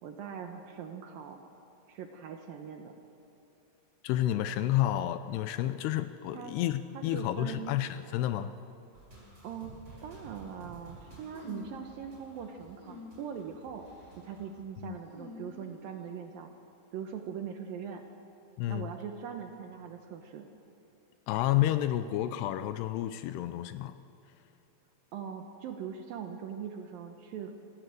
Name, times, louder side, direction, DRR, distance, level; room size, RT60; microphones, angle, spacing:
voice 1, 0.0-1.4 1.9-2.9 6.3-6.6 6.9-7.8 9.4-13.8 14.2-16.5 16.9-18.0 18.7-20.5 25.1-27.6, right 7 dB, 70° right, 5 dB, 2.3 m, -41 dB
voice 2, 4.0-8.5 14.8-15.0 18.6-18.9 21.3-24.0, left 13 dB, 80° left, 12 dB, 2.5 m, -30 dB
sound 1, 8.9-14.6, right 2 dB, 25° right, 6.4 m, -53 dB
sound 2, 11.3-11.9 12.7-13.4 13.8-14.2 15.0-16.2, left 3 dB, 35° left, 1.8 m, -48 dB
25.5 x 16.0 x 7.8 m, 2.7 s
omnidirectional pair, 5.1 m